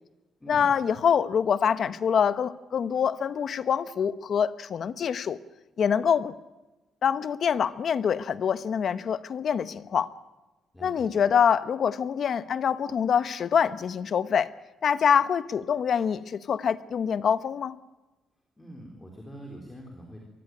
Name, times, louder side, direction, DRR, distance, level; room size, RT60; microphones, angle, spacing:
voice 1, 0.5-5.4 5.8-6.3 7.0-10.1 10.8-14.5 14.8-17.8, left 7 dB, 50° left, 14 dB, 0.9 m, -25 dB
voice 2, 10.7-11.1 18.6-20.2, right 1 dB, 10° left, 0 dB, 3.7 m, -44 dB
23.5 x 16.0 x 9.5 m, 1.1 s
cardioid pair, 140°, 0 cm